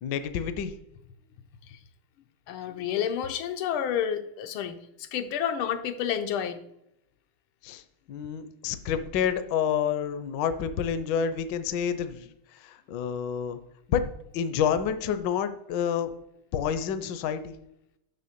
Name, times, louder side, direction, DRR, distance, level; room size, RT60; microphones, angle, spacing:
voice 1, 0.0-0.8 7.6-7.8 8.1-13.6 13.9-16.1 16.5-17.5, left 8 dB, 65° left, 11 dB, 1.2 m, -29 dB
voice 2, 2.5-6.6, left 9 dB, 80° left, 8 dB, 1.5 m, -30 dB
6.9 x 5.7 x 6.5 m, 0.80 s
omnidirectional pair, 2.4 m